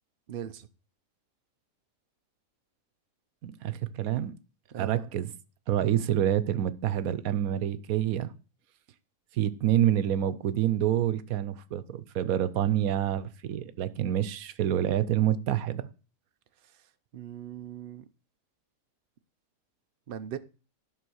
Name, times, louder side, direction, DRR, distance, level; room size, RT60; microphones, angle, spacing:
voice 1, 0.3-0.7 4.7-5.1 17.1-18.0 20.1-20.4, right 9 dB, 50° right, 0.7 m, -39 dB
voice 2, 3.4-4.3 4.8-5.3 5.7-8.3 9.3-15.9, right 11 dB, 85° right, 1.2 m, -27 dB
11.5 x 4.1 x 6.3 m
omnidirectional pair, 1.5 m